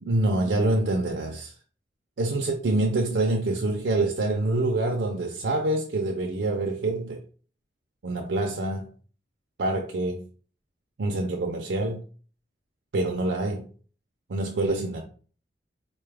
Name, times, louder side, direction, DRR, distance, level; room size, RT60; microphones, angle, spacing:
voice 1, 0.0-1.5 2.2-7.2 8.0-8.9 9.6-10.2 11.0-12.0 12.9-13.7 14.3-15.0, right 2 dB, 85° right, 0.5 m, -26 dB
4.0 x 2.3 x 3.3 m
head